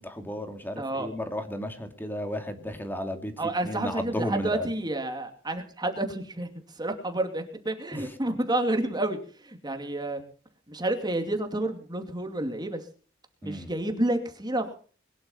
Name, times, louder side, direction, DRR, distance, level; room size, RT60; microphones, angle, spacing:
voice 1, 0.0-3.3 3.6-4.7 7.9-8.1 13.4-13.7, equal, 10° left, 6 dB, 2.7 m, -34 dB
voice 2, 0.8-1.1 3.4-10.2 10.7-12.9 13.4-14.8, right 1 dB, 20° right, 5 dB, 2.6 m, -30 dB
22.0 x 11.0 x 5.7 m, 0.41 s
head